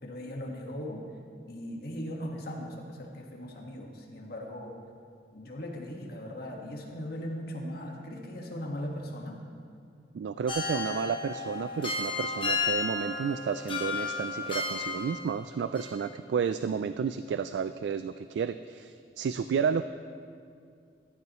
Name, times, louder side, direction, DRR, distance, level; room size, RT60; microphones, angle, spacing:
voice 1, 0.0-1.0 1.5-4.7 5.3-9.4, equal, 60° left, 0 dB, 1.6 m, -38 dB
voice 2, 10.1-19.9, right 6 dB, 70° right, 11 dB, 0.3 m, -31 dB
sound 1, 10.5-15.5 15.8-15.9, left 4 dB, 30° left, 1.3 m, -33 dB
15.0 x 12.5 x 3.0 m, 2.3 s
head